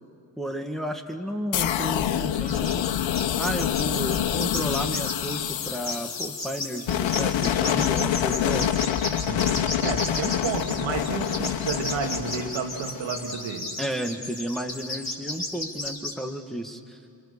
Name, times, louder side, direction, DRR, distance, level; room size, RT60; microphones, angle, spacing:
voice 1, 0.4-8.8 13.8-17.0, equal, ahead, 3 dB, 1.9 m, -33 dB
sound 1, 1.5-13.3, left 10 dB, 80° left, 0.9 m, -27 dB
sound 2, 2.5-2.9 3.1-16.1, left 2 dB, 35° left, 5.3 m, -34 dB
voice 2, 9.2-13.7, right 6 dB, 85° right, 3 dB, 2.2 m, -31 dB
28.0 x 26.0 x 6.9 m, 2.5 s
cardioid pair, 85°, 45 cm